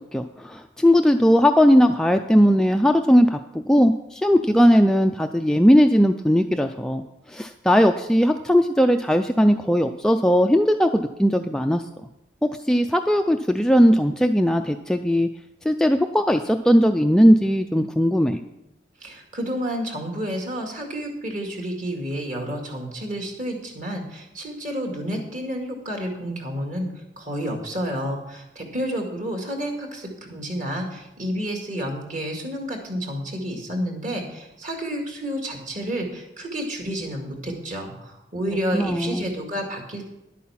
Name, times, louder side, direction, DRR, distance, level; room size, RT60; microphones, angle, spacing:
voice 1, 0.1-3.4 3.7-7.0 7.3-11.8 12.4-15.3 15.6-18.4 38.7-39.3, equal, 5° left, 5 dB, 0.3 m, -18 dB
voice 2, 19.0-40.1, equal, 40° right, 2 dB, 2.2 m, -30 dB
11.0 x 8.5 x 5.8 m, 0.91 s
head